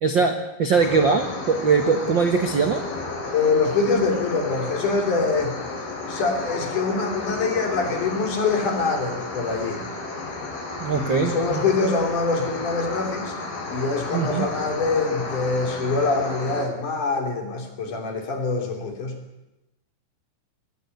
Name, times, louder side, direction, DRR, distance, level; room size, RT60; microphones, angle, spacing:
voice 1, 0.0-2.8 10.8-11.6 14.1-14.5, right 5 dB, 50° right, 6 dB, 1.4 m, -21 dB
sound 1, 0.7-16.6, left 3 dB, 80° left, 6.7 m, -33 dB
voice 2, 3.3-5.6 6.1-9.8 10.9-13.3 13.7-19.1, left 4 dB, 60° left, 4 dB, 4.8 m, -24 dB
23.0 x 18.5 x 8.1 m, 0.94 s
omnidirectional pair, 4.2 m